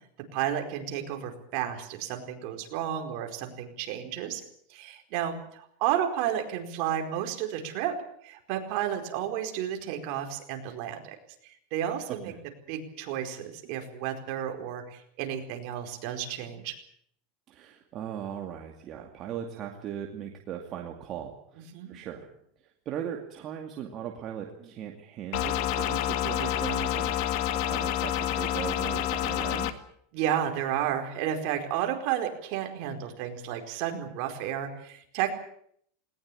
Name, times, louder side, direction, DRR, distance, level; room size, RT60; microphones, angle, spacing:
voice 1, 0.3-4.4 4.7-7.9 8.2-11.1 11.4-12.3 12.7-16.7 21.7-21.9 30.1-35.3, right 10 dB, 50° right, 4 dB, 4.6 m, -32 dB
voice 2, 17.5-22.3 22.9-27.4 27.6-29.7, right 9 dB, 35° right, 2 dB, 2.4 m, -38 dB
sound 1, 25.3-29.7, left 11 dB, 55° left, 1.8 m, -28 dB
20.0 x 19.5 x 8.8 m, 0.67 s
supercardioid pair, 155°, 0 cm